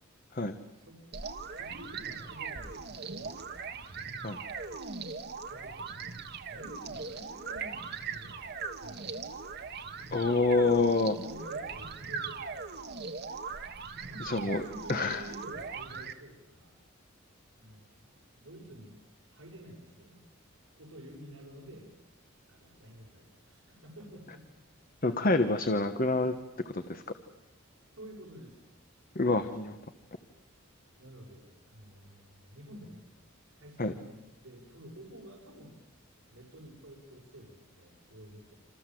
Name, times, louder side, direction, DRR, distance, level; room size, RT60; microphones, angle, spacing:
sound 1, 1.1-16.1, right 5 dB, 50° right, 1.5 m, -40 dB
voice 1, 1.6-3.7 5.5-6.0 6.5-9.4 11.2-12.6 14.0-16.8 17.6-18.0 18.4-19.0 19.3-20.2 20.8-21.9 22.5-24.4 27.9-28.6 31.0-33.0 33.6-35.7 36.0-38.6, equal, 70° right, -3 dB, 6.6 m, -50 dB
voice 2, 10.1-11.2 14.2-14.6 14.9-15.3 25.0-26.3 26.6-27.0 29.1-29.8 33.8-33.9, left 3 dB, 40° left, 8 dB, 1.2 m, -27 dB
28.0 x 27.0 x 7.7 m, 1.1 s
head